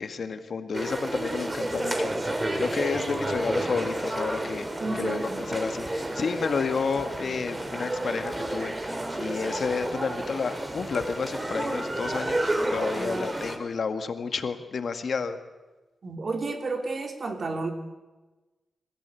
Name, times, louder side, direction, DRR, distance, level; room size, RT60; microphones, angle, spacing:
voice 1, 0.0-4.7 5.0-15.4, left 5 dB, 65° left, 8 dB, 1.8 m, -31 dB
sound 1, 0.7-13.6, right 1 dB, 25° right, 3.7 m, -31 dB
voice 2, 4.8-5.5 13.0-13.3 16.0-17.7, right 3 dB, 55° right, 4 dB, 3.5 m, -32 dB
29.0 x 15.0 x 8.4 m, 1.2 s
cardioid pair, 65°, 0 cm